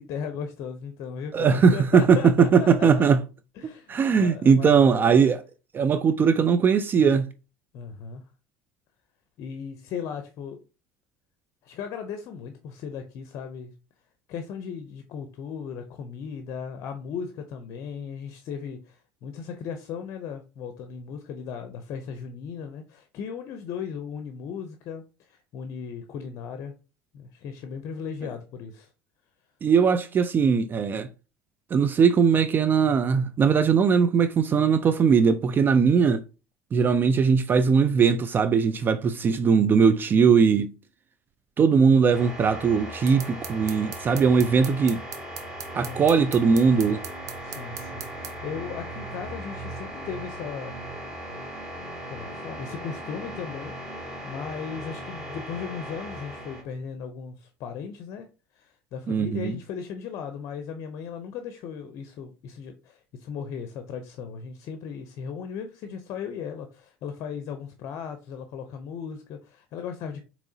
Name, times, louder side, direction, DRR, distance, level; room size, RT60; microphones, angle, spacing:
voice 1, 0.0-3.0 3.6-5.2 7.7-8.2 9.4-10.6 11.6-13.7 14.3-26.7 27.1-28.9 45.8-46.0 47.4-50.7 52.1-53.8 54.2-58.3 58.5-70.2, left 7 dB, 55° left, 0.6 m, -37 dB
voice 2, 1.3-3.2 3.9-5.4 5.7-7.3 29.6-31.1 31.7-36.2 36.7-40.7 41.6-45.0 45.7-47.0 59.1-59.6, right 6 dB, 30° right, 0.3 m, -20 dB
sound 1, 42.1-56.6, right 1 dB, 10° right, 1.8 m, -38 dB
sound 2, 43.1-48.3, right 8 dB, 55° right, 0.8 m, -39 dB
4.7 x 2.9 x 2.7 m
supercardioid pair, 90°, 6 cm